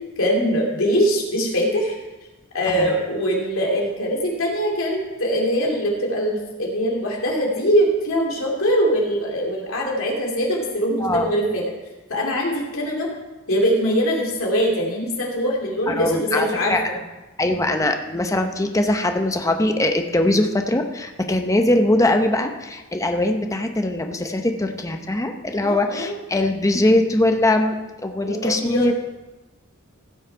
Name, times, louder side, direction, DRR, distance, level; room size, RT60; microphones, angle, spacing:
voice 1, 0.2-2.0 2.5-11.6 12.1-13.1 13.5-17.0 25.6-26.1 28.2-28.9, equal, 70° left, -2 dB, 2.8 m, -22 dB
voice 2, 11.0-11.3 15.9-16.8 17.4-27.8 28.0-28.9, left 1 dB, 15° left, 5 dB, 0.8 m, -21 dB
16.0 x 6.4 x 4.6 m, 1.1 s
head